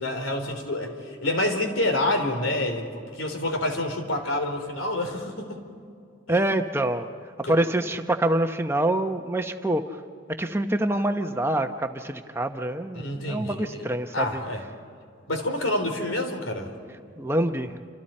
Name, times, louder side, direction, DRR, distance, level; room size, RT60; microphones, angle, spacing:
voice 1, 0.0-5.6 7.4-7.6 12.9-13.9 14.1-14.6 15.3-16.7, left 1 dB, 90° left, 5 dB, 3.3 m, -28 dB
voice 2, 6.3-7.1 7.5-10.0 10.4-14.4 17.2-17.8, right 1 dB, 10° right, 6 dB, 0.9 m, -26 dB
28.5 x 27.0 x 4.4 m, 2.4 s
head